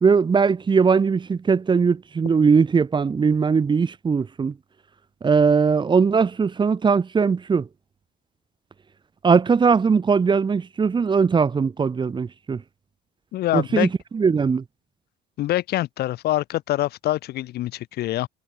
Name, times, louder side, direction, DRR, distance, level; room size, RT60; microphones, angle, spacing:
voice 1, 0.0-4.5 5.2-7.7 9.2-12.6 13.5-14.6, right 5 dB, 30° right, 1.2 m, -20 dB
voice 2, 13.3-13.9 15.4-18.3, left 15 dB, 70° left, 1.2 m, -25 dB
cardioid pair, 110°, 17 cm